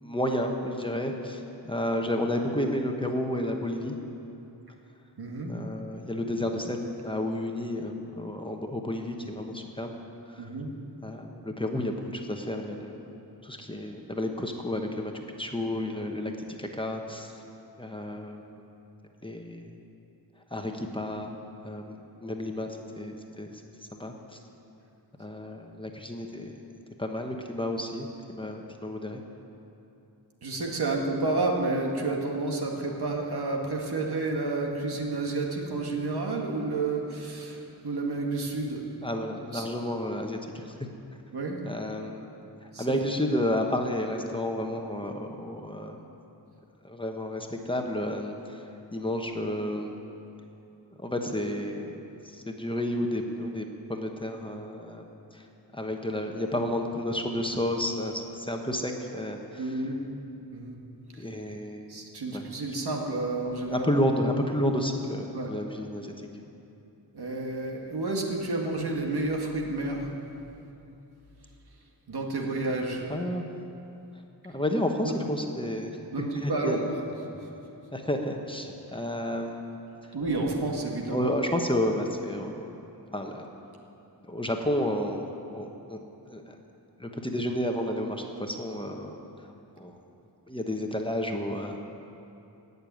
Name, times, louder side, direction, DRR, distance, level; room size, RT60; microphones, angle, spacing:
voice 1, 0.0-4.0 5.5-9.9 10.4-10.5 11.0-13.0 13.4-15.1 15.4-16.3 16.6-17.3 17.8-18.4 19.2-19.7 20.5-21.3 21.6-23.5 24.0-24.1 25.2-26.6 27.0-29.2 39.0-40.4 41.6-42.3 42.8-46.0 46.8-48.6 48.9-49.9 51.0-51.9 52.3-55.0 55.7-59.8 61.2-62.0 62.3-62.4 63.7-66.1 73.1-73.4 74.4-75.9 76.4-76.9 77.9-79.8 81.1-82.7 83.1-83.5 84.3-86.0 86.3-86.6 87.0-89.2 89.8-90.0 90.5-91.9, left 1 dB, 15° left, 2 dB, 1.1 m, -31 dB
voice 2, 5.2-5.5 10.4-10.7 30.4-38.8 39.5-39.6 41.3-41.6 42.7-42.9 59.6-60.0 60.5-60.8 61.9-63.9 65.3-65.5 67.1-70.1 72.1-73.0 75.0-75.1 76.1-76.8 80.1-81.3, right 2 dB, 70° right, 0 dB, 2.0 m, -30 dB
17.5 x 6.9 x 9.3 m, 2.8 s
wide cardioid pair, 120°, 40 cm